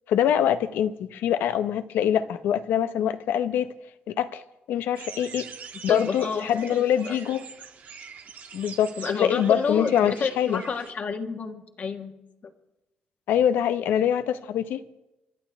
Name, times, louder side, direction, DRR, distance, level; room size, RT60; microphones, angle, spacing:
voice 1, 0.1-3.7 4.1-4.4 4.7-5.5 5.8-7.4 8.5-8.9 9.2-10.6 13.3-14.8, left 9 dB, 85° left, 0.7 m, -24 dB
sound 1, 4.9-10.9, right 6 dB, 60° right, 1.4 m, -43 dB
voice 2, 5.9-7.2 9.0-12.1 12.4-12.5, left 5 dB, 50° left, 1.4 m, -30 dB
28.5 x 11.5 x 3.5 m
cardioid pair, 100°, 3 cm